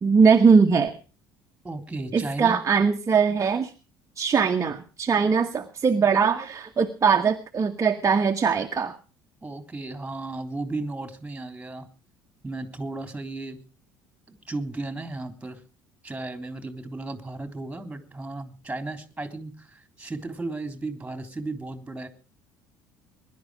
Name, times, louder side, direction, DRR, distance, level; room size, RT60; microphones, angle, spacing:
voice 1, 0.0-0.9 2.1-3.7 4.2-8.9, right 5 dB, 30° right, 5 dB, 1.4 m, -21 dB
voice 2, 1.6-2.6 9.4-11.9 12.4-13.6 14.5-15.6 16.0-22.1, right 2 dB, 10° right, 8 dB, 3.6 m, -34 dB
21.0 x 11.5 x 5.0 m, 0.36 s
figure-of-eight pair, 60°, 11 cm